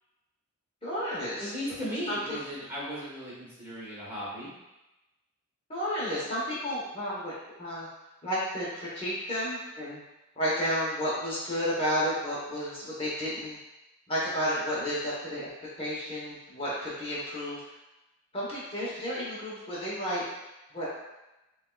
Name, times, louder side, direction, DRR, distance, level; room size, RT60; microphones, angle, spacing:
voice 1, 0.8-1.5 1.9-2.4 5.7-7.3 7.6-7.9 8.2-10.0 10.4-13.6 14.1-15.5 15.8-17.6 18.3-20.2 20.7-20.9, equal, 25° left, -8 dB, 1.0 m, -32 dB
voice 2, 1.4-4.5, equal, 10° right, -8 dB, 1.2 m, -36 dB
6.8 x 2.3 x 2.3 m, 0.99 s
head